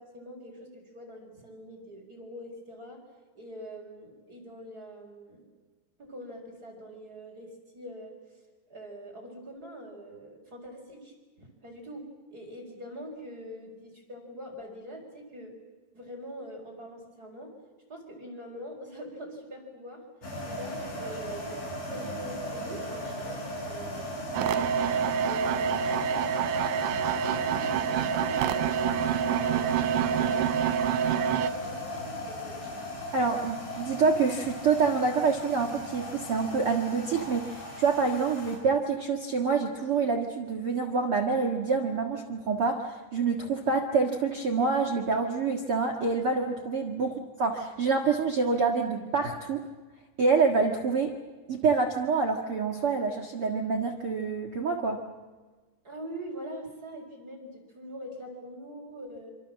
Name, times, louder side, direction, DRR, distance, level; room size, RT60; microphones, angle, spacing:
voice 1, 0.0-3.0 3.3-5.4 6.0-8.1 8.7-15.5 15.9-17.5 17.9-20.0 20.4-23.9 24.5-26.7 27.2-28.6 29.2-32.7 47.0-47.2 55.8-59.3, equal, 20° right, 0 dB, 4.8 m, -44 dB
sound 1, 20.2-38.6, equal, 55° left, 8.8 m, -37 dB
sound 2, 24.3-31.5, right 8 dB, 85° right, 3.6 m, -27 dB
voice 2, 33.1-49.6 50.2-51.1 51.5-55.0, right 4 dB, 55° right, 1 dB, 1.5 m, -27 dB
26.5 x 26.5 x 7.5 m, 1.3 s
omnidirectional pair, 5.3 m